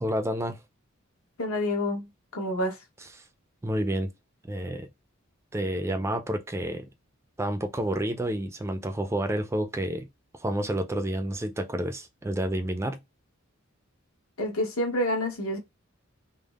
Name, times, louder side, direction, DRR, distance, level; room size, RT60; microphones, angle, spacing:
voice 1, 0.0-0.6 3.6-4.1 4.4-4.9 5.5-6.9 7.4-10.1 10.4-13.0, right 1 dB, 10° right, 0.3 m, -29 dB
voice 2, 1.4-2.8 14.4-15.6, left 1 dB, 85° left, 1.0 m, -28 dB
3.4 x 2.0 x 2.3 m
head